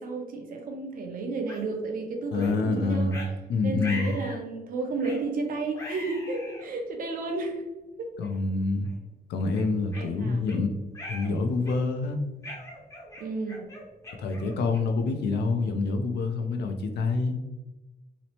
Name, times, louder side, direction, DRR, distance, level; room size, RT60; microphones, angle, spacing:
voice 1, 0.0-3.2 3.6-7.6 8.0-8.1 9.9-10.5 13.2-13.6, right 3 dB, 55° right, 4 dB, 0.5 m, -32 dB
sound 1, 1.5-1.6 2.4-2.6 3.1-3.3 3.8-4.4 5.0-5.3 5.7-6.7 7.4-7.5 8.2-8.4 8.8-9.0 9.5-10.6 10.9-11.3 11.6-12.0 12.4-15.0, left 1 dB, 20° left, 0.6 m, -41 dB
voice 2, 2.3-3.2 3.5-4.1 8.2-8.9 9.3-10.7 11.1-12.2 14.2-17.4, left 3 dB, 80° left, 6 dB, 0.4 m, -27 dB
2.9 x 2.0 x 2.7 m, 1.1 s
cardioid pair, 135°, 17 cm